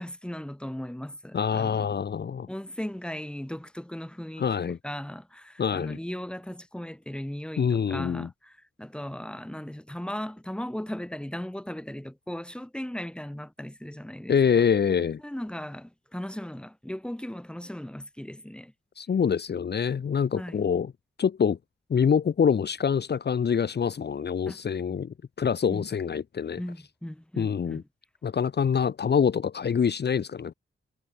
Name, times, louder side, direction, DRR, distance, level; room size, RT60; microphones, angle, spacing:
voice 1, 0.0-2.0 2.5-14.6 15.2-18.7 20.4-20.6 24.5-24.6 25.7-25.9 26.6-27.8, left 1 dB, 5° left, 3.9 m, -37 dB
voice 2, 1.3-2.5 4.4-4.8 5.6-6.0 7.6-8.3 14.3-15.2 19.0-20.9 21.2-21.6 21.9-26.6 27.4-27.8 28.2-30.5, left 7 dB, 55° left, 1.0 m, -25 dB
wide cardioid pair, 135°, 20 cm